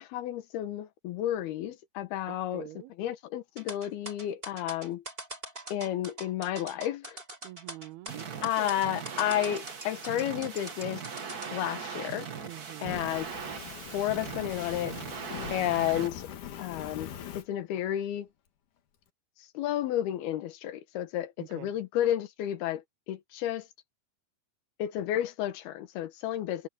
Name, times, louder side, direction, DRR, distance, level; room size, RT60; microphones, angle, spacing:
voice 1, 0.0-2.7 3.0-5.0 5.7-7.2 8.4-11.0 11.5-12.3 12.8-13.3 13.9-15.0 15.5-16.3 16.6-17.1 17.4-18.3 19.5-22.8 23.1-23.7 24.8-26.7, left 12 dB, 80° left, 3.2 m, -31 dB
voice 2, 2.3-2.9 5.8-5.9 7.4-8.8 12.5-13.0 21.4-21.7, right 15 dB, 85° right, 2.9 m, -46 dB
sound 1, 3.6-11.5, right 1 dB, 15° right, 6.6 m, -42 dB
sound 2, 8.1-16.1, right 6 dB, 70° right, 0.8 m, -40 dB
Fire, 12.8-17.4, left 9 dB, 60° left, 2.9 m, -42 dB
omnidirectional pair, 4.4 m